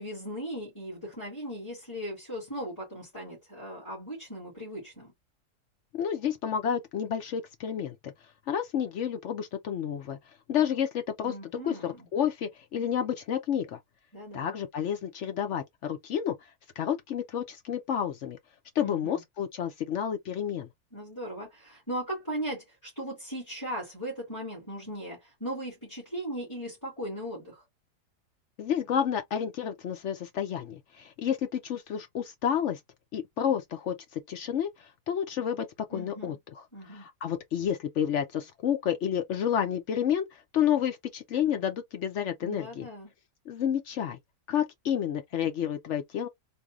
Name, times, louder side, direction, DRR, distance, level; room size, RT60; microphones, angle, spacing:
voice 1, 0.0-5.1 11.2-12.1 14.1-14.5 18.8-19.2 20.9-27.6 35.9-36.4 36.7-37.1 42.4-43.1, equal, 10° left, 2.3 m, -38 dB
voice 2, 5.9-8.1 8.5-10.2 10.5-11.3 11.6-13.8 14.3-16.4 16.8-18.4 18.8-20.7 28.6-32.8 33.1-36.4 36.9-42.9 43.5-44.2 44.5-46.3, left 9 dB, 65° left, 0.7 m, -30 dB
4.2 x 2.6 x 2.4 m
omnidirectional pair, 1.7 m